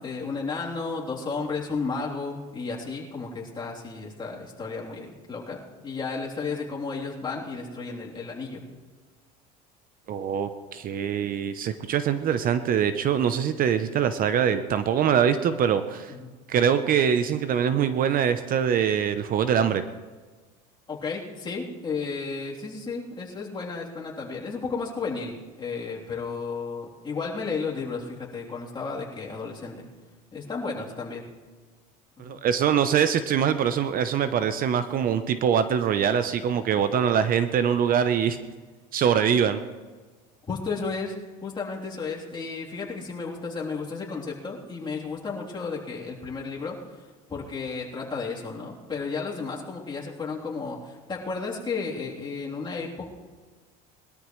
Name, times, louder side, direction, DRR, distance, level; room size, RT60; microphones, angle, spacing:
voice 1, 0.0-8.6 16.1-16.3 20.9-29.9 30.3-31.2 32.2-32.4 40.5-41.1 41.4-46.8 47.3-53.1, left 4 dB, 20° left, -4 dB, 3.3 m, -33 dB
voice 2, 10.1-16.1 16.5-19.8 32.2-38.4 38.9-39.6, right 8 dB, 45° right, 11 dB, 0.8 m, -23 dB
21.5 x 13.0 x 3.2 m, 1.4 s
supercardioid pair, 110°, 21 cm